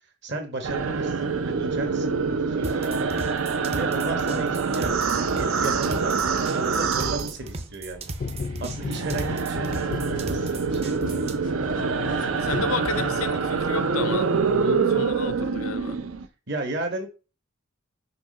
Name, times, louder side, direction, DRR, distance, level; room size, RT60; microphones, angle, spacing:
voice 1, 0.2-3.1 3.7-6.1 6.5-8.1 8.6-11.4 16.5-17.1, right 2 dB, 55° right, 1.3 m, -34 dB
sound 1, 0.6-8.0 8.2-16.3, right 5 dB, 80° right, 0.6 m, -25 dB
sound 2, 2.6-11.4, right 3 dB, 30° right, 0.5 m, -37 dB
sound 3, 8.2-13.7, left 4 dB, 40° left, 0.3 m, -35 dB
voice 2, 11.7-16.0, left 5 dB, 85° left, 0.6 m, -32 dB
5.9 x 3.0 x 5.3 m
head